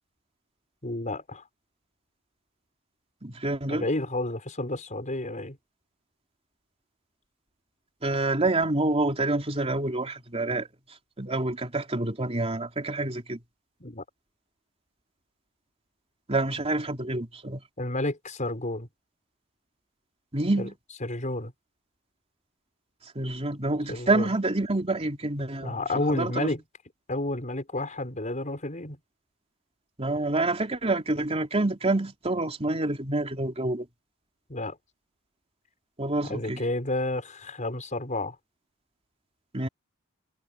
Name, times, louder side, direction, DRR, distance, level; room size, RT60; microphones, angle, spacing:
voice 1, 0.8-1.4 3.7-5.6 13.8-14.0 17.8-18.9 20.6-20.7 21.0-21.5 23.9-24.3 25.6-26.6 27.1-29.0 34.5-34.8 36.2-38.4, left 2 dB, 35° left, 5.7 m, -30 dB
voice 2, 3.2-3.9 8.0-10.7 11.2-13.4 16.3-17.6 20.3-20.7 23.1-25.8 26.1-26.5 30.0-33.9 36.0-36.6 39.5-39.7, right 2 dB, 30° right, 3.2 m, -27 dB
head